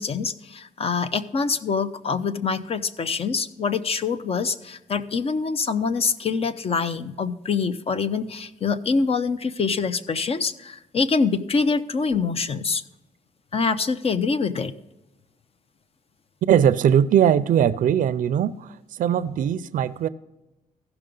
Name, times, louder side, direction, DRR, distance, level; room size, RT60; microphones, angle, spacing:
voice 1, 0.0-12.8 13.5-14.7, left 5 dB, 45° left, 0.7 m, -25 dB
voice 2, 16.5-20.1, right 9 dB, 70° right, 0.5 m, -20 dB
15.0 x 5.9 x 3.8 m
cardioid pair, 100°, 14 cm